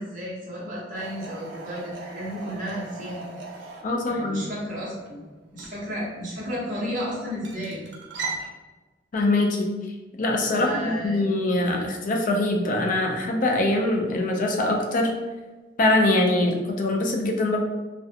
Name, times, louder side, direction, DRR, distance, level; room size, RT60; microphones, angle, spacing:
voice 1, 0.0-3.2 3.6-3.7 4.1-5.3 5.5-7.8 10.5-11.2, equal, 45° right, -6 dB, 0.9 m, -33 dB
sound 1, 0.9-8.5, right 4 dB, 65° right, 0.4 m, -40 dB
voice 2, 3.8-4.5 9.1-9.7 10.2-15.1 15.8-17.6, left 2 dB, 45° left, 2 dB, 0.4 m, -23 dB
2.4 x 2.1 x 2.7 m, 1.2 s
head